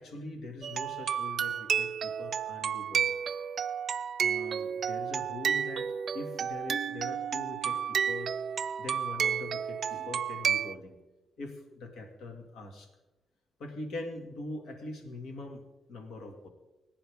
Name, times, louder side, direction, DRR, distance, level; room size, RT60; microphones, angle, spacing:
voice 1, 0.0-3.1 4.2-8.4 8.8-11.0 11.4-12.9 13.6-16.5, left 2 dB, 80° left, 4 dB, 2.1 m, -42 dB
sound 1, 0.6-10.8, right 8 dB, 55° right, 0.4 m, -31 dB
19.0 x 9.9 x 3.6 m, 1.1 s
cardioid pair, 105°, 0 cm